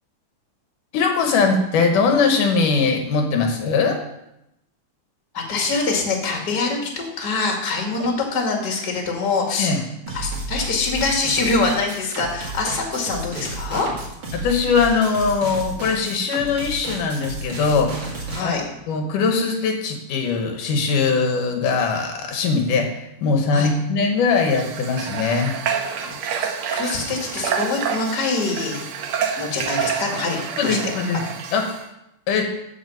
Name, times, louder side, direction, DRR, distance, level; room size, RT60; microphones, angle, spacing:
voice 1, 0.9-4.0 9.6-9.8 14.3-18.6 18.9-25.5 30.6-31.2 31.5-31.7 32.3-32.5, left 4 dB, 75° left, 3 dB, 2.7 m, -21 dB
voice 2, 5.3-13.9 18.3-18.7 23.5-23.7 26.0-26.1 26.7-28.8 29.4-30.9, left 3 dB, 35° left, 0 dB, 2.4 m, -24 dB
sound 1, 10.1-18.4, right 2 dB, 40° right, 2.6 m, -32 dB
Water / Water tap faucet, 24.3-31.9, right 7 dB, 75° right, 1.2 m, -28 dB
14.5 x 6.0 x 5.6 m, 0.84 s
omnidirectional pair, 3.8 m